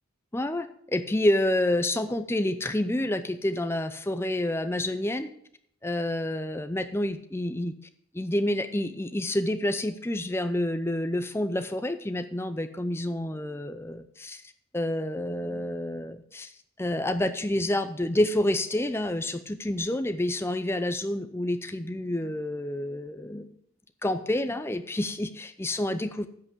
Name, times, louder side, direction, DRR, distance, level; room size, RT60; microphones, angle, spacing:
voice 1, 0.3-5.3 5.8-7.7 8.1-14.4 14.7-16.5 16.8-23.5 24.0-26.3, left 1 dB, 10° left, 9 dB, 0.6 m, -28 dB
10.5 x 6.1 x 6.7 m, 0.68 s
head